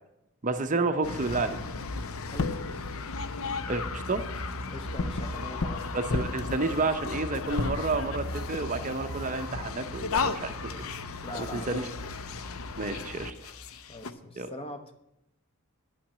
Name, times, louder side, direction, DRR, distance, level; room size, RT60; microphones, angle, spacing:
voice 1, 0.4-1.6 3.7-4.2 5.9-10.7 11.3-11.9 12.8-13.3 14.4-14.5, right 3 dB, 35° right, 8 dB, 0.6 m, -30 dB
sound 1, 1.0-14.1, left 3 dB, 70° left, 0.7 m, -34 dB
voice 2, 2.3-2.9 4.7-6.0 10.5-10.9 11.2-11.8 13.9-14.8, left 1 dB, 25° left, 6 dB, 1.0 m, -42 dB
10.0 x 5.8 x 8.6 m, 0.83 s
head